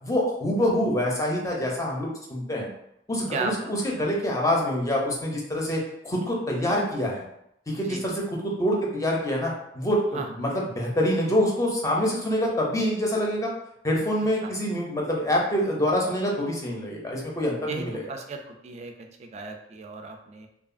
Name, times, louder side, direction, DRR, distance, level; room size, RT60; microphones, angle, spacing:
voice 1, 0.0-2.7 3.1-7.2 7.7-13.5 13.8-18.0, equal, 15° left, -2 dB, 0.5 m, -26 dB
voice 2, 3.3-3.7 7.9-8.0 10.1-10.3 14.4-14.5 17.7-18.9 19.2-20.5, right 3 dB, 35° right, 4 dB, 0.3 m, -35 dB
2.8 x 2.3 x 2.5 m, 0.77 s
head